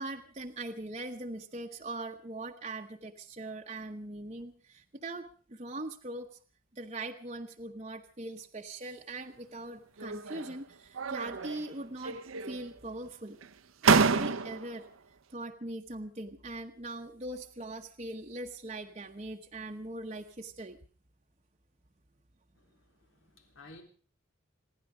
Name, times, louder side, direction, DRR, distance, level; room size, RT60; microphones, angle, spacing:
voice 1, 0.0-6.3 6.7-12.2 12.4-13.4 13.8-14.8 15.3-20.8, right 2 dB, 30° right, 1.0 m, -41 dB
sound 1, 10.0-10.6 10.9-11.7 12.0-12.8 13.4-13.5 13.8-14.8, right 5 dB, 80° right, 0.8 m, -28 dB
voice 2, 22.5-23.8, left 2 dB, 75° left, 3.7 m, -55 dB
27.0 x 10.5 x 4.9 m
head